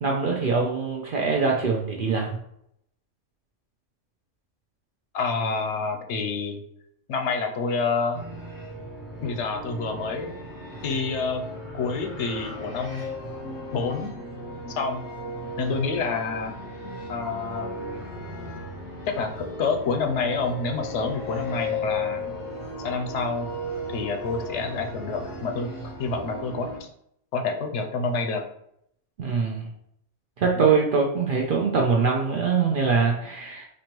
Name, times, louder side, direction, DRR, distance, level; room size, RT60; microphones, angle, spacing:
voice 1, 0.0-2.4 29.2-29.7 30.4-33.6, right 5 dB, 60° right, 0 dB, 0.6 m, -23 dB
voice 2, 5.1-6.6 7.1-8.2 9.2-10.3 10.8-11.4 11.7-13.1 13.7-14.1 14.7-15.0 15.6-16.5 17.1-17.7 19.1-22.2 22.8-23.5 23.9-25.7 26.0-26.9 27.3-28.4, left 4 dB, 70° left, 5 dB, 0.8 m, -28 dB
sound 1, 8.1-26.8, left 1 dB, 20° right, 1.2 m, -36 dB
4.3 x 2.7 x 3.0 m, 0.73 s
omnidirectional pair, 1.3 m